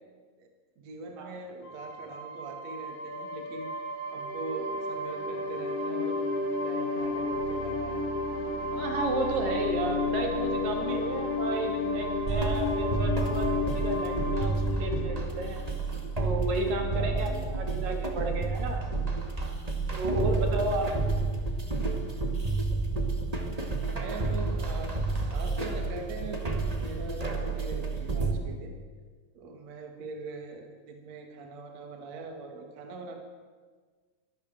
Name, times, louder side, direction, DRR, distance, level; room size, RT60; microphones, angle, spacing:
voice 1, 0.4-3.7 4.1-8.0 17.0-17.5 20.1-21.0 23.9-28.7 29.3-33.2, right 3 dB, 55° right, 4 dB, 3.2 m, -42 dB
sound 1, 1.6-16.1, left 2 dB, 80° left, 4.6 m, -32 dB
voice 2, 8.7-15.6 16.2-18.8 19.9-20.9, right 2 dB, 80° right, 3 dB, 4.4 m, -32 dB
sound 2, 12.3-28.3, right 3 dB, 15° right, 1.3 m, -30 dB
23.0 x 15.5 x 7.7 m, 1.5 s
omnidirectional pair, 3.9 m